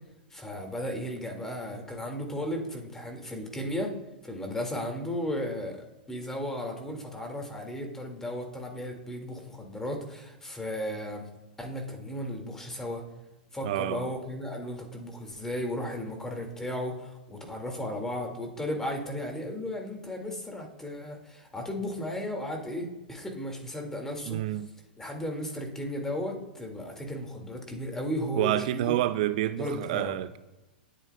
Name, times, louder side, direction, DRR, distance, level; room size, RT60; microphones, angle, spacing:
voice 1, 0.3-3.9 4.2-11.3 11.6-13.0 13.5-24.4 25.0-29.0 29.6-30.2, left 1 dB, 10° left, 2.2 m, -35 dB
voice 2, 13.6-14.1 24.3-24.7 28.4-30.4, right 14 dB, 50° right, 0.4 m, -28 dB
18.5 x 8.9 x 2.3 m
figure-of-eight pair, 105°, 5 cm